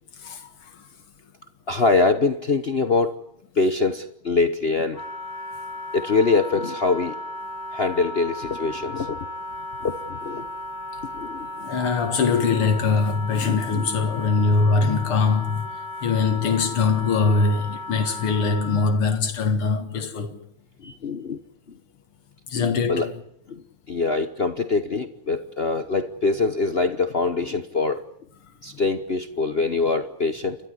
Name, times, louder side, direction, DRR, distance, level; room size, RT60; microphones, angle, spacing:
voice 1, 1.7-3.2 3.5-5.0 5.9-7.2 7.7-9.2 9.8-10.5 11.1-11.7 12.4-12.6 13.3-13.9 21.0-21.4 22.5-23.1 23.5-28.0 28.6-30.6, left 3 dB, 45° left, 0.8 m, -24 dB
Wind instrument woodwind instrument, 4.9-19.0, left 1 dB, 15° left, 2.8 m, -35 dB
voice 2, 11.6-15.7 16.0-20.4 20.8-20.9 22.5-23.0, left 4 dB, 85° left, 2.7 m, -22 dB
29.5 x 13.5 x 9.8 m
omnidirectional pair, 2.4 m